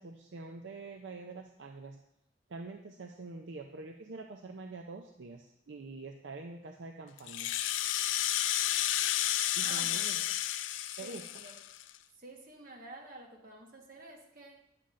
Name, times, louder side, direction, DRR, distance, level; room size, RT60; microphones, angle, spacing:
voice 1, 0.0-2.0 2.5-7.5 9.5-10.2 11.0-11.2, right 3 dB, 75° right, 3 dB, 0.6 m, -45 dB
Rattle (instrument), 7.2-12.0, left 12 dB, 85° left, 0.3 m, -32 dB
voice 2, 9.6-10.2 10.9-11.6 12.2-14.6, right 2 dB, 50° right, 1 dB, 1.3 m, -49 dB
9.9 x 7.4 x 2.5 m, 0.79 s
head